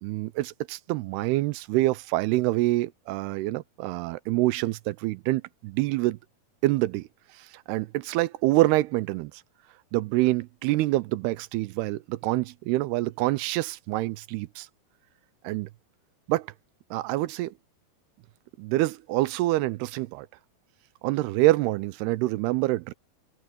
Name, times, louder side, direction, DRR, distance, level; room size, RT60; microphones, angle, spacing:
voice 1, 0.0-6.2 6.6-7.1 7.4-9.3 9.9-14.7 15.4-15.7 16.3-16.5 16.9-17.5 18.6-20.3 21.0-22.9, right 18 dB, 85° right, 2.7 m, -26 dB
omnidirectional pair, 4.6 m